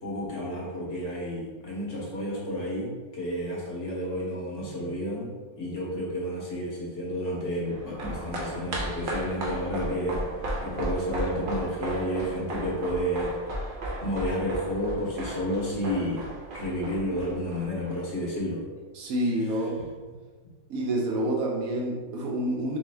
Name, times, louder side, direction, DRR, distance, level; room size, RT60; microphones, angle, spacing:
voice 1, 0.0-5.3 5.6-13.3 14.0-16.3 16.5-18.6, equal, 55° left, -5 dB, 1.3 m, -31 dB
sound 1, 7.7-18.2 18.5-18.6, right 1 dB, 55° right, 0.6 m, -35 dB
voice 2, 18.9-19.8 20.7-22.8, right 1 dB, 70° right, 0 dB, 1.1 m, -28 dB
3.4 x 3.2 x 3.3 m, 1.4 s
omnidirectional pair, 1.5 m